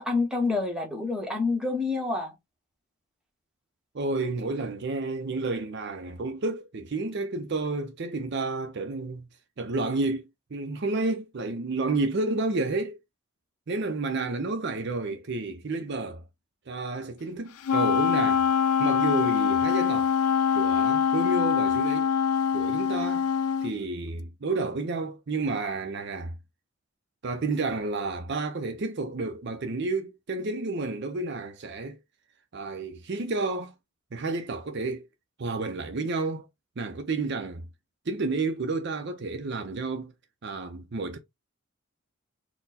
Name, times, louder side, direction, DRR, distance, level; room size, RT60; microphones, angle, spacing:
voice 1, 0.0-2.3, left 3 dB, 5° right, 1.0 m, -27 dB
voice 2, 3.9-9.3 9.6-10.2 10.5-13.0 13.7-16.2 16.7-18.5 18.8-20.1 20.5-22.1 22.5-23.3 23.6-26.3 27.2-32.0 32.5-33.7 34.1-35.1 35.4-36.5 36.8-37.6 38.1-40.1 40.4-41.2, right 3 dB, 50° right, 0.5 m, -30 dB
Wind instrument woodwind instrument, 17.6-23.7, left 7 dB, 90° left, 0.4 m, -24 dB
4.4 x 2.2 x 4.1 m
head